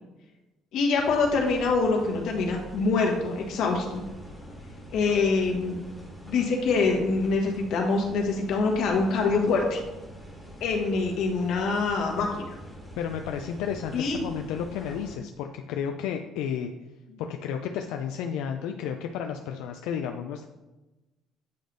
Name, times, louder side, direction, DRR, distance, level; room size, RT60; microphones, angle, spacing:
voice 1, 0.7-4.0 4.9-5.8 6.2-9.8 10.6-12.5 13.9-14.2, left 4 dB, 60° left, 1 dB, 1.3 m, -25 dB
sound 1, 0.9-15.2, equal, ahead, 1.2 m, -45 dB
voice 2, 13.0-16.7 17.2-20.5, left 8 dB, 90° left, 5 dB, 0.4 m, -32 dB
8.3 x 3.3 x 3.9 m, 1.1 s
cardioid pair, 160°, 0 cm